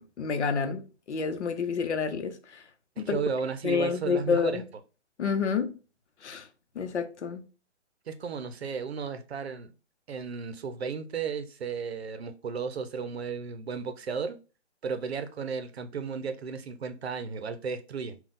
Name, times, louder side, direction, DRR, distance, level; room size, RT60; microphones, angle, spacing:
voice 1, 0.0-2.6 3.0-3.2 3.6-4.6 5.2-5.7 6.2-6.5 6.7-7.4, left 6 dB, 75° left, 0.8 m, -29 dB
voice 2, 3.0-4.6 8.1-9.7 10.1-14.4 14.8-18.2, right 6 dB, 65° right, 0.6 m, -34 dB
3.9 x 2.3 x 3.6 m
hypercardioid pair, 180°, 34 cm